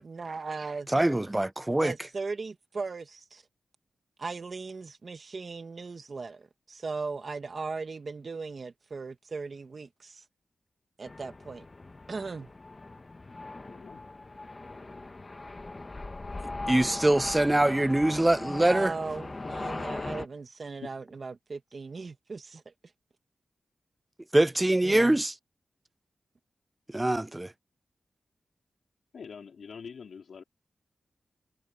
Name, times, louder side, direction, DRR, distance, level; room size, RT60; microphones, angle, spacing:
voice 1, 0.0-0.9 1.8-3.4 4.2-10.2 11.0-11.6 12.1-12.5 18.4-22.7 24.8-25.2, right 4 dB, 50° right, 1.6 m, -38 dB
voice 2, 0.9-1.9 16.7-18.9 24.3-25.3 26.9-27.5, right 1 dB, 15° right, 0.4 m, -24 dB
sound 1, 11.1-20.3, left 2 dB, 30° left, 1.1 m, -39 dB
voice 3, 13.6-14.0 20.8-20.9 29.1-30.4, left 6 dB, 85° left, 3.0 m, -44 dB
wide cardioid pair, 115°, 0 cm